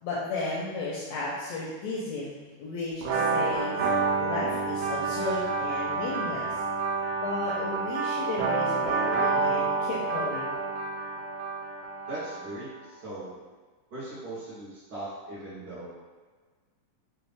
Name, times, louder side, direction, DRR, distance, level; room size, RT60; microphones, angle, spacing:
voice 1, 0.0-3.8 4.2-6.6 7.2-10.6, left 3 dB, 80° left, -6 dB, 1.6 m, -34 dB
sound 1, 3.0-12.6, right 4 dB, 85° right, 1.4 m, -29 dB
voice 2, 12.1-13.3 13.9-15.9, right 1 dB, 65° right, -11 dB, 1.0 m, -39 dB
5.5 x 2.5 x 3.4 m, 1.4 s
omnidirectional pair, 3.7 m